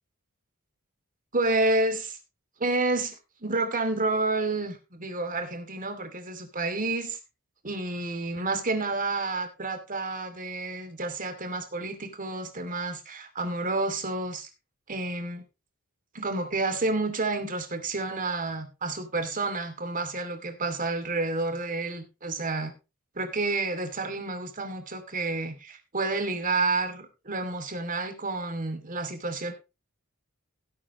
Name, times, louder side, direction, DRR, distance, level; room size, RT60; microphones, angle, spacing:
voice 1, 1.3-2.2 2.6-3.1 3.4-7.2 7.6-14.5 14.9-15.4 16.1-22.7 23.1-29.5, right 2 dB, 40° right, 7 dB, 2.5 m, -30 dB
17.0 x 8.6 x 3.0 m, 0.28 s
head